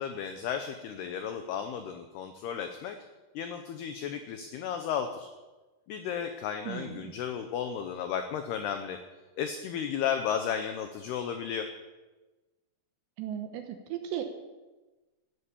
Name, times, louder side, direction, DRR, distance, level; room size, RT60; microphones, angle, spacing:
voice 1, 0.0-3.0 3.3-5.3 5.9-9.0 9.4-11.7, left 8 dB, 90° left, 7 dB, 2.2 m, -34 dB
voice 2, 6.7-7.1 13.2-14.2, right 10 dB, 75° right, 6 dB, 2.8 m, -36 dB
13.5 x 11.5 x 8.5 m, 1.2 s
omnidirectional pair, 6.0 m